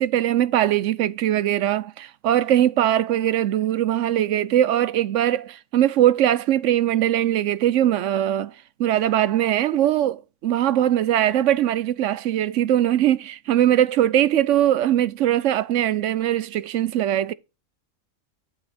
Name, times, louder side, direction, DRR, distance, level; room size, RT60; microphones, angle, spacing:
voice 1, 0.0-8.5 8.8-17.3, right 12 dB, 70° right, 0.9 m, -21 dB
11.5 x 4.9 x 4.2 m
omnidirectional pair, 1.4 m